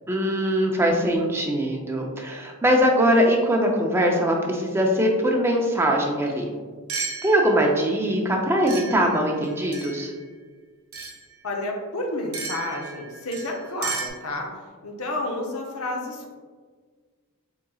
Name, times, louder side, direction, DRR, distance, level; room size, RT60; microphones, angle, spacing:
voice 1, 0.1-6.5 7.2-10.1, equal, 10° right, 0 dB, 0.4 m, -22 dB
sound 1, 6.3-6.4 6.9-7.7 8.7-10.2 10.9-11.2 12.3-14.1, right 5 dB, 65° right, 0.7 m, -34 dB
voice 2, 11.4-16.3, left 2 dB, 70° left, 0 dB, 0.6 m, -31 dB
4.2 x 3.7 x 2.3 m, 1.5 s
head